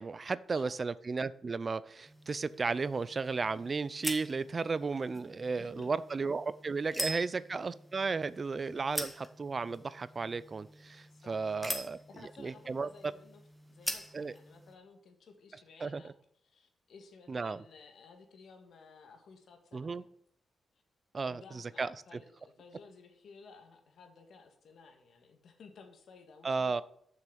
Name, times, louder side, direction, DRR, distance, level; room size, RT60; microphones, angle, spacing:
voice 1, 0.0-12.0 12.4-12.9 14.1-14.3 15.8-16.0 17.3-17.6 19.7-20.0 21.1-22.2 26.4-26.8, right 4 dB, 35° right, 17 dB, 0.4 m, -34 dB
sound 1, 2.1-14.7, equal, 5° left, 1.5 m, -44 dB
voice 2, 5.5-6.0 7.0-7.2 8.6-8.9 11.1-11.7 11.9-13.4 13.7-16.1 16.4-20.1 21.3-26.8, left 4 dB, 70° left, 4 dB, 1.8 m, -56 dB
7.2 x 6.3 x 7.8 m, 0.70 s
cardioid pair, 115°, 0 cm